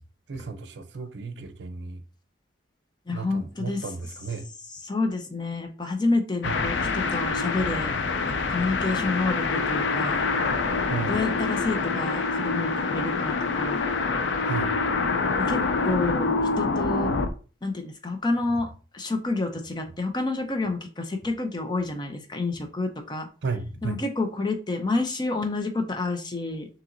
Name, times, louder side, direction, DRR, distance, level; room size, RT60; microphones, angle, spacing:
voice 1, 0.3-2.0 3.1-4.5 6.4-6.6 10.9-11.2 14.4-14.7 23.4-24.0, right 5 dB, 70° right, 0.5 m, -33 dB
voice 2, 3.1-3.8 4.8-7.9 8.2-10.2 11.1-13.8 15.4-17.1 17.6-23.3 23.8-26.7, left 3 dB, 25° left, 0.5 m, -29 dB
sound 1, 6.4-17.3, left 4 dB, 80° left, 0.5 m, -26 dB
5.7 x 2.9 x 2.5 m
head